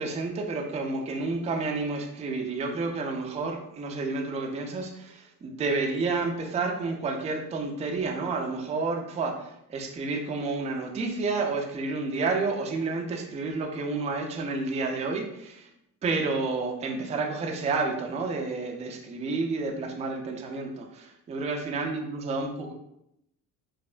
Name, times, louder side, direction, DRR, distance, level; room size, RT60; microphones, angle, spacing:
voice 1, 0.0-15.7 16.0-22.7, right 3 dB, 15° right, 2 dB, 0.3 m, -30 dB
3.2 x 2.0 x 2.4 m, 0.80 s
supercardioid pair, 75°, 45 cm